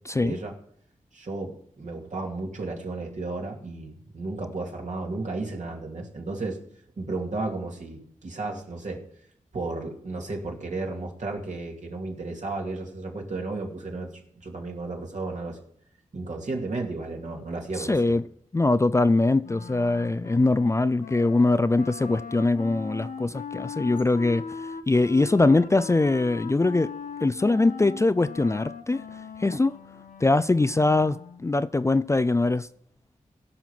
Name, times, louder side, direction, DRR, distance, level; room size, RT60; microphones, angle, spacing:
voice 1, 0.1-0.5 1.1-6.6 7.0-9.0 9.5-15.6 16.1-18.2, right 3 dB, 60° right, 2.6 m, -33 dB
voice 2, 17.8-18.2 18.5-24.4 24.9-26.9 27.2-29.0 29.4-29.7 30.2-31.2 31.4-32.7, left 2 dB, 20° left, 0.4 m, -22 dB
Wind instrument woodwind instrument, 19.4-31.5, left 6 dB, 80° left, 0.8 m, -39 dB
16.5 x 5.6 x 5.9 m
cardioid pair, 55°, 14 cm